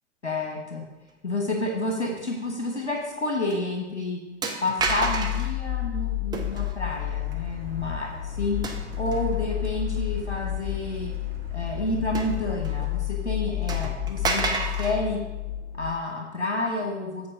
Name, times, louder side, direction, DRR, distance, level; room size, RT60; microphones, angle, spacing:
voice 1, 0.2-0.8 1.2-4.2 4.6-8.6 9.0-11.1 11.5-15.2 15.7-17.3, left 2 dB, 80° left, 0 dB, 1.4 m, -29 dB
sound 1, 3.0-3.2 3.5-3.6 4.4-5.5 6.3-6.8 8.6-9.4 10.0-10.1 12.1-12.9 13.2-13.3 13.7-15.0, right 3 dB, 10° right, 0.7 m, -30 dB
sound 2, 4.8-15.9, left 15 dB, 35° left, 0.4 m, -31 dB
Car, 6.9-13.2, right 5 dB, 60° right, 1.4 m, -46 dB
8.6 x 4.6 x 5.5 m, 1.1 s
figure-of-eight pair, 105°, 34 cm